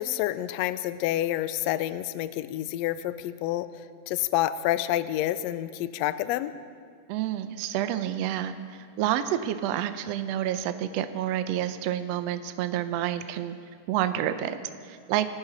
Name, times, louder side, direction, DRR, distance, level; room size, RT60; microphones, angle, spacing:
voice 1, 0.0-3.7 4.1-6.5, left 13 dB, 85° left, 14 dB, 1.5 m, -28 dB
voice 2, 7.1-13.5 13.9-14.6 14.8-15.3, right 11 dB, 80° right, 10 dB, 1.4 m, -29 dB
26.0 x 12.5 x 4.0 m, 2.2 s
omnidirectional pair, 3.6 m